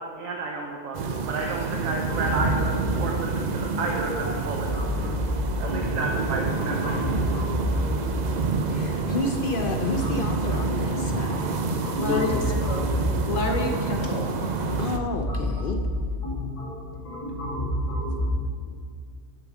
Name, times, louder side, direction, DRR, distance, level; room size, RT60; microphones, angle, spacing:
voice 1, 0.0-4.7 5.0-5.2 5.6-7.0, right 3 dB, 90° right, 0 dB, 1.3 m, -31 dB
sound 1, 0.9-15.0, right 4 dB, 60° right, 0.4 m, -28 dB
sound 2, 2.1-18.3, equal, 25° left, 1.8 m, -30 dB
voice 2, 8.7-11.4 12.0-12.6 14.8-15.8, left 3 dB, 55° left, 5 dB, 0.6 m, -30 dB
voice 3, 12.0-12.9 13.3-14.4, left 2 dB, 80° left, 2 dB, 1.6 m, -29 dB
11.0 x 7.0 x 4.9 m, 2.1 s
omnidirectional pair, 1.4 m